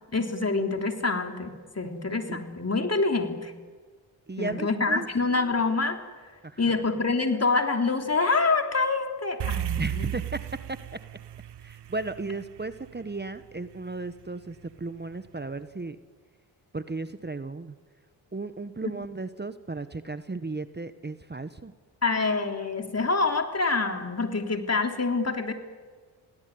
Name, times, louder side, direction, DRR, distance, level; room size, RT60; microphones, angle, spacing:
voice 1, 0.1-3.5 4.4-6.0 6.6-10.1 22.0-25.5, left 3 dB, 30° left, 5 dB, 3.4 m, -26 dB
voice 2, 1.8-2.4 4.3-5.1 6.4-6.6 9.8-10.4 10.7-10.8 11.6-16.0 16.7-17.7 18.3-21.7, right 3 dB, 20° right, 12 dB, 1.2 m, -35 dB
sound 1, 9.4-13.9, right 13 dB, 55° right, 0.8 m, -34 dB
28.0 x 17.5 x 9.5 m, 1.5 s
supercardioid pair, 50°, 48 cm